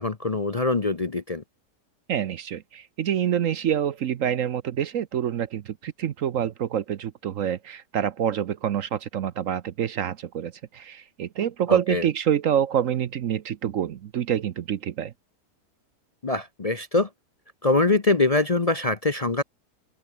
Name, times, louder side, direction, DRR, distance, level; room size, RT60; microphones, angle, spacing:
voice 1, 0.0-1.4 11.7-12.0 16.2-17.1 17.6-19.4, left 3 dB, 30° left, 0.8 m, -23 dB
voice 2, 2.1-15.1, right 9 dB, 60° right, 1.0 m, -27 dB
open air
omnidirectional pair, 1.7 m